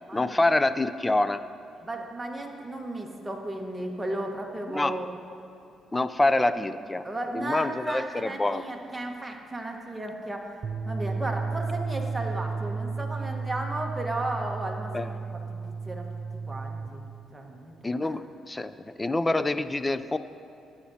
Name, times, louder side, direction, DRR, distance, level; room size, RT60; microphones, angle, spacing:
voice 1, 0.1-1.4 4.7-5.0 5.9-7.0 7.3-8.6 14.9-15.1 17.8-20.2, left 2 dB, 20° left, 12 dB, 0.4 m, -26 dB
voice 2, 1.8-5.1 7.0-10.6 10.9-16.1 16.5-17.0 17.3-17.8, right 1 dB, 15° right, 1 dB, 1.3 m, -34 dB
sound 1, 10.6-16.9, right 4 dB, 55° right, 0.5 m, -33 dB
14.5 x 9.4 x 2.8 m, 2.8 s
cardioid pair, 90°, 0 cm